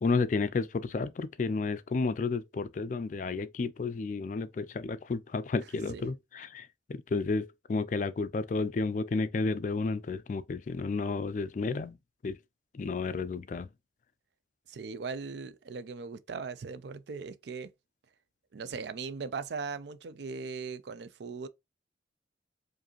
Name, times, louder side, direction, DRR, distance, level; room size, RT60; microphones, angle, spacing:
voice 1, 0.0-12.0 12.2-12.4 12.7-13.7, left 4 dB, 45° left, 0.3 m, -32 dB
voice 2, 14.7-17.7 18.5-21.5, right 5 dB, 70° right, 0.4 m, -39 dB
4.8 x 2.6 x 3.0 m
head